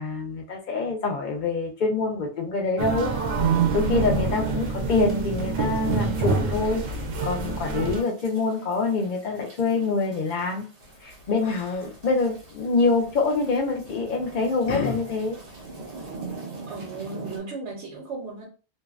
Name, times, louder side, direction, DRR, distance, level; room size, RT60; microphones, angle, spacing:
voice 1, 0.0-3.1 3.7-6.8 7.2-10.7 11.0-15.4, left 3 dB, 55° left, 1 dB, 0.5 m, -25 dB
sound 1, 2.8-8.0, right 4 dB, 85° right, 0.9 m, -26 dB
sound 2, 5.7-17.4, right 3 dB, 40° right, 0.6 m, -44 dB
Yell, 10.8-16.3, left 5 dB, 85° left, 1.0 m, -40 dB
voice 2, 16.7-18.5, right 3 dB, 65° right, -2 dB, 1.0 m, -35 dB
2.6 x 2.1 x 2.3 m, 0.34 s
omnidirectional pair, 1.3 m